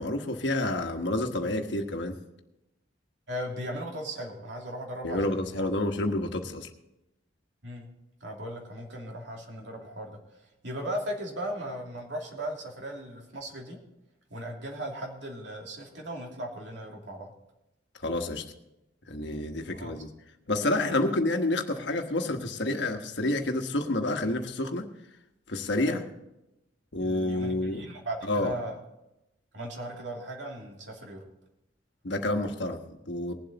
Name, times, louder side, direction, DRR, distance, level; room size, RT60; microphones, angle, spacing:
voice 1, 0.0-2.2 5.0-6.7 18.0-18.4 19.1-20.1 20.5-24.9 25.5-26.0 26.9-27.9 28.3-28.5 32.0-33.3, left 2 dB, 65° left, 5 dB, 1.3 m, -29 dB
voice 2, 3.3-5.7 7.6-7.9 8.2-10.2 10.6-13.8 14.3-17.3 19.7-20.0 25.8-26.0 27.0-28.8 29.5-31.3, right 1 dB, 70° right, 0 dB, 2.7 m, -37 dB
20.0 x 7.8 x 4.1 m, 0.91 s
head